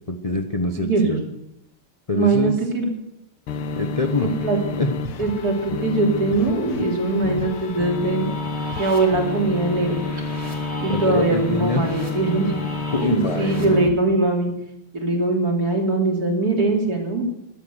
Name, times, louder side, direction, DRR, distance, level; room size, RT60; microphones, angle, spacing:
voice 1, 0.1-1.2 2.1-2.5 3.8-4.3 4.8-4.9 10.9-11.8 12.9-13.8, left 3 dB, 45° left, 6 dB, 0.4 m, -24 dB
voice 2, 0.8-1.2 2.1-2.9 4.4-4.6 5.2-8.3 8.8-10.0 10.8-12.5 13.0-14.5 14.9-17.2, right 3 dB, 45° right, 1 dB, 3.7 m, -21 dB
sound 1, 3.5-13.9, left 4 dB, 85° left, 2.1 m, -29 dB
sound 2, 7.4-13.6, left 1 dB, 30° right, 3.6 m, -38 dB
14.5 x 12.0 x 8.1 m, 0.81 s
omnidirectional pair, 2.3 m